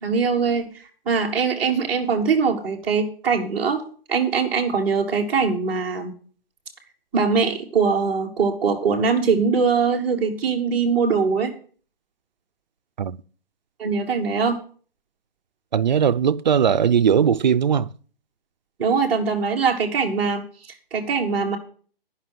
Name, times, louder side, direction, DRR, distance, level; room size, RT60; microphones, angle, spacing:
voice 1, 0.0-3.8 4.1-6.1 7.1-11.5 13.8-14.6 18.8-20.4 20.9-21.6, right 5 dB, 5° right, 0.8 m, -22 dB
voice 2, 15.7-17.9, right 8 dB, 50° right, 0.5 m, -19 dB
11.5 x 5.8 x 7.6 m
hypercardioid pair, 175°, 29 cm